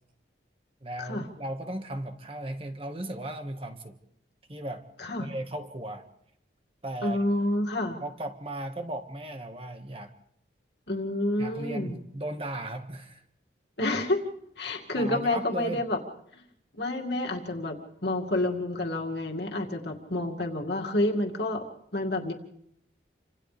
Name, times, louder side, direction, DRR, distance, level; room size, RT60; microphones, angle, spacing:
voice 1, 0.8-4.0 4.5-4.9 5.2-6.0 6.8-7.2 8.0-10.1 11.4-13.2 14.9-15.8, right 1 dB, 30° right, 6 dB, 1.7 m, -36 dB
voice 2, 7.0-8.0 10.9-12.0 13.8-14.2 14.6-16.0 16.3-16.4 16.8-21.6 21.9-22.3, left 1 dB, 65° left, 2 dB, 2.4 m, -29 dB
29.5 x 25.5 x 3.5 m, 0.72 s
head